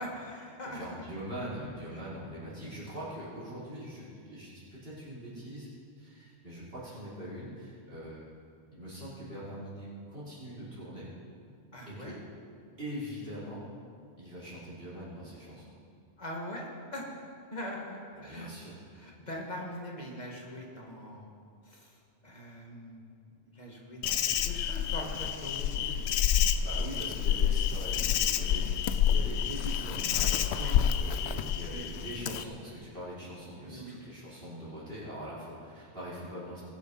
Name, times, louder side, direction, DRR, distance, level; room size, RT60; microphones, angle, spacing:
voice 1, 0.0-0.9 11.7-12.2 16.2-18.5 18.9-21.3 21.6-22.0 22.2-23.2 23.5-26.1 30.5-30.8 31.7-31.9 33.7-34.0, equal, 40° left, -2 dB, 2.1 m, -42 dB
voice 2, 0.6-5.7 6.0-8.2 8.7-11.1 11.9-12.2 12.8-13.6 14.2-15.7 18.1-18.7 26.6-36.6, equal, 60° right, -9 dB, 4.7 m, -42 dB
Insect, 24.0-32.4, left 9 dB, 80° left, 0.8 m, -28 dB
20.5 x 7.3 x 5.5 m, 2.3 s
omnidirectional pair, 1.1 m